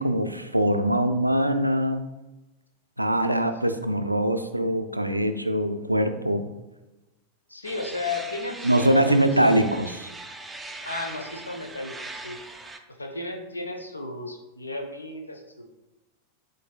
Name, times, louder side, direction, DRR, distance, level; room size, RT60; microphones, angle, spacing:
voice 1, 0.0-2.0 3.0-6.5 8.6-10.1, right 1 dB, 85° right, 8 dB, 0.3 m, -23 dB
voice 2, 7.5-9.2 10.8-12.4 13.0-15.7, left 3 dB, 80° left, 4 dB, 0.5 m, -34 dB
sound 1, 7.6-12.8, right 2 dB, 10° right, 0.4 m, -40 dB
7.7 x 2.6 x 2.3 m, 1.1 s
figure-of-eight pair, 90°, 0 cm